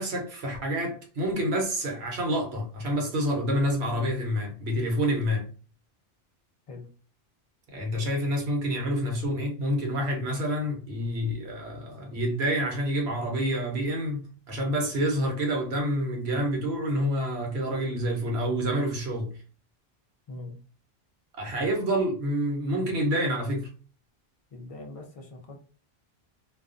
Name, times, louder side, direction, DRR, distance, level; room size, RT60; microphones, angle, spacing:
voice 1, 0.0-5.5 7.7-19.4 21.4-23.7, equal, 80° right, 1.0 m, -28 dB
voice 2, 20.3-20.6 24.5-25.6, left 2 dB, 55° left, 0.4 m, -42 dB
2.3 x 2.1 x 2.4 m
omnidirectional pair, 1.1 m